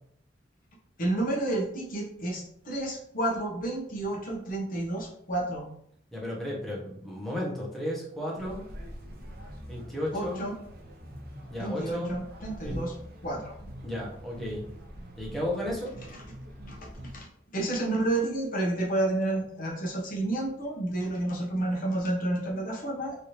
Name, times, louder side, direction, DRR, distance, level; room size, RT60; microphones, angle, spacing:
voice 1, 1.0-5.7 10.1-10.5 11.6-12.9 13.2-13.5 16.7-16.8 17.1-17.3 17.5-23.2, right 1 dB, 45° left, -2 dB, 0.8 m, -30 dB
voice 2, 6.1-8.6 9.7-10.4 11.5-12.1 12.6-12.8 13.8-14.7 15.2-15.9, left 1 dB, ahead, -5 dB, 0.9 m, -33 dB
sound 1, 8.3-17.2, equal, 55° right, 0.6 m, -44 dB
3.2 x 2.7 x 2.9 m, 0.68 s
head